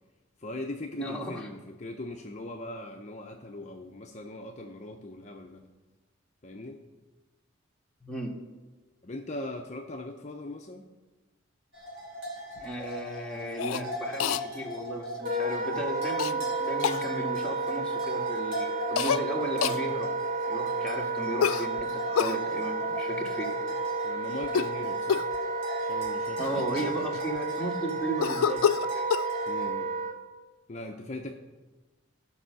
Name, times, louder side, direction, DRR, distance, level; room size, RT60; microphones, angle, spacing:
voice 1, 0.4-5.7 6.4-6.8 9.0-10.9 24.0-25.3 25.8-27.1 29.5-30.0 30.7-31.3, left 1 dB, 35° left, 2 dB, 0.6 m, -40 dB
voice 2, 1.0-1.5 8.0-8.4 12.6-20.1 20.5-23.7 26.4-28.6 28.9-29.1, right 1 dB, 5° left, -2 dB, 1.5 m, -35 dB
sound 1, 11.7-29.7, equal, 70° right, 2.9 m, -40 dB
Cough, 13.6-13.8 14.2-14.4 16.2-16.3 16.8-17.0 19.0-19.2 19.6-19.8 21.4-22.4 24.4-24.8 25.1-25.4 26.1-26.2 26.4-27.4 28.2-29.3, left 8 dB, 85° left, 0.4 m, -27 dB
Wind instrument woodwind instrument, 15.2-30.2, right 3 dB, 40° right, 1.1 m, -31 dB
14.5 x 5.5 x 6.3 m, 1.2 s
head